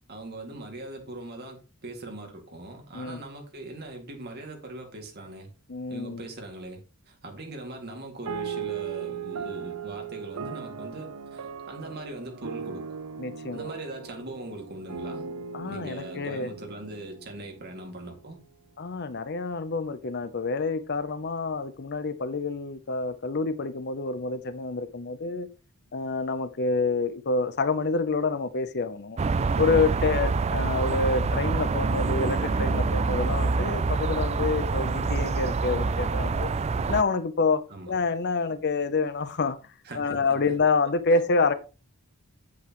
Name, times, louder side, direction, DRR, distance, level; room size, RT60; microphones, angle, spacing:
voice 1, 0.1-5.5 5.9-12.9 13.5-15.2 15.7-18.4 37.7-37.9 39.8-40.2, right 2 dB, 45° right, 2.3 m, -41 dB
voice 2, 5.7-6.3 13.2-13.7 15.5-16.5 18.8-25.5 25.9-29.2 29.6-36.5 36.9-39.6 39.9-41.5, left 4 dB, 50° left, 0.7 m, -27 dB
sound 1, 8.2-18.0, right 6 dB, 75° right, 0.7 m, -38 dB
sound 2, 29.2-37.0, right 4 dB, 30° right, 0.3 m, -26 dB
8.4 x 8.3 x 3.1 m
head